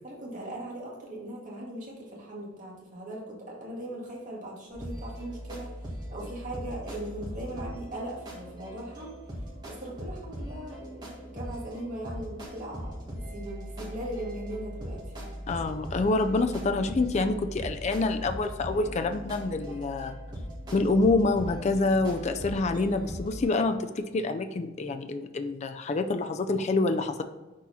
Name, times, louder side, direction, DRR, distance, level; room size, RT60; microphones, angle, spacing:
voice 1, 0.0-9.1 9.7-15.0, right 1 dB, 40° right, -4 dB, 1.9 m, -39 dB
sound 1, 4.7-23.5, equal, 20° right, 1.7 m, -40 dB
voice 2, 15.5-20.2 20.7-27.2, left 3 dB, 35° left, 8 dB, 0.4 m, -27 dB
6.2 x 4.2 x 4.1 m, 1.2 s
head